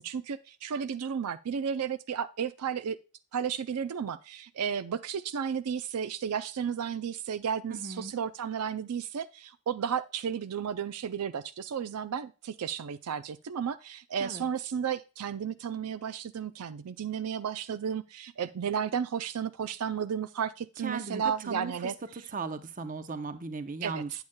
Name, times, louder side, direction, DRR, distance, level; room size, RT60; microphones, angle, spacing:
voice 1, 0.0-3.0 3.3-21.9 23.8-24.2, right 7 dB, 85° right, 0.4 m, -33 dB
voice 2, 7.7-8.1 14.2-14.4 20.8-21.9 22.3-24.2, right 4 dB, 35° right, 0.7 m, -37 dB
8.6 x 8.0 x 2.2 m
head